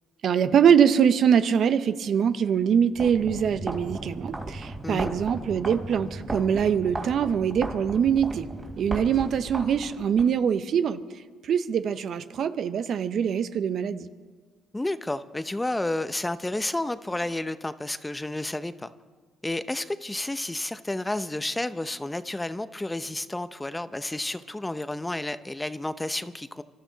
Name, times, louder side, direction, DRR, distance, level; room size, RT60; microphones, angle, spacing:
voice 1, 0.2-8.5 8.8-11.0 11.4-14.1, right 7 dB, 60° right, 12 dB, 0.7 m, -23 dB
sound 1, 2.9-10.3, right 2 dB, 25° right, 2.8 m, -36 dB
voice 2, 14.7-18.9 19.4-26.6, left 1 dB, 15° left, 13 dB, 0.7 m, -31 dB
25.0 x 12.5 x 4.0 m, 1.4 s
supercardioid pair, 60°, 0 cm